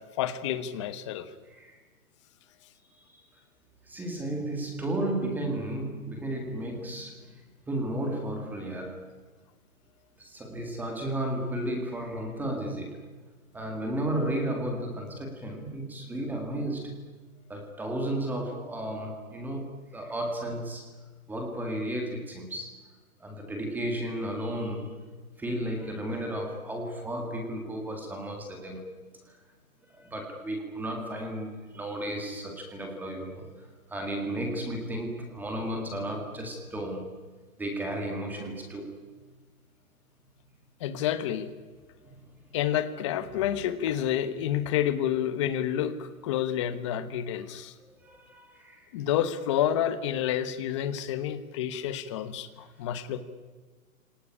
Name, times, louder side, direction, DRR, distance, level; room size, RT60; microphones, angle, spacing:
voice 1, 0.0-1.3 40.8-41.5 42.5-47.7 48.9-53.2, left 10 dB, 20° left, 12 dB, 1.2 m, -29 dB
voice 2, 1.5-1.8 3.1-3.3 3.9-7.4 7.7-9.1 10.2-13.0 13.5-17.0 17.5-20.9 21.3-22.8 23.2-25.0 25.4-28.9 29.9-37.1 37.6-39.0 42.0-42.3 48.0-48.9, right 1 dB, 5° right, 3 dB, 1.9 m, -33 dB
27.5 x 19.0 x 9.9 m, 1.4 s
hypercardioid pair, 175°, 42 cm